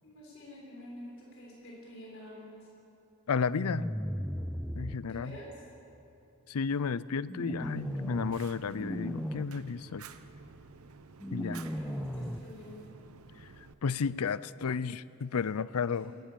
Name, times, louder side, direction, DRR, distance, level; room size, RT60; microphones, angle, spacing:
voice 1, 0.0-2.6 5.1-5.5 11.4-12.8 16.0-16.2, equal, 60° left, -4 dB, 7.0 m, -48 dB
voice 2, 3.3-3.9 4.8-5.3 6.5-10.1 11.3-11.6 13.8-16.1, left 5 dB, 85° left, 18 dB, 0.5 m, -32 dB
sound 1, 3.5-5.0 7.3-8.4 8.7-9.4 11.2-12.4, equal, ahead, 0.5 m, -35 dB
Fire, 7.6-13.7, right 5 dB, 75° right, 0.9 m, -52 dB
21.0 x 19.0 x 6.9 m, 2.8 s
head